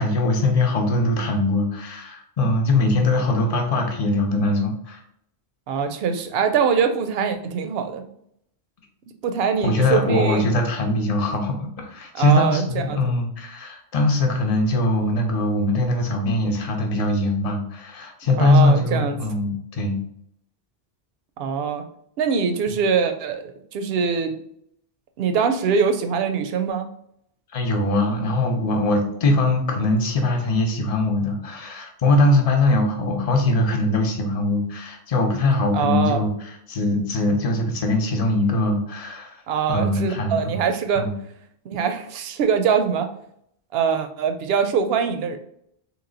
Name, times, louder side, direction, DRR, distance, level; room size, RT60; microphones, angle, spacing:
voice 1, 0.0-5.0 9.6-20.0 22.7-22.8 27.5-39.3 39.7-40.6 41.0-41.1, left 2 dB, 40° left, 2 dB, 0.7 m, -21 dB
voice 2, 5.7-8.0 9.2-10.5 12.1-13.0 18.4-19.2 21.4-21.8 22.2-24.3 25.2-26.9 35.7-36.2 39.5-41.1 41.7-43.1 43.7-45.4, right 6 dB, 70° right, 7 dB, 0.8 m, -23 dB
3.0 x 3.0 x 3.8 m, 0.70 s
omnidirectional pair, 1.1 m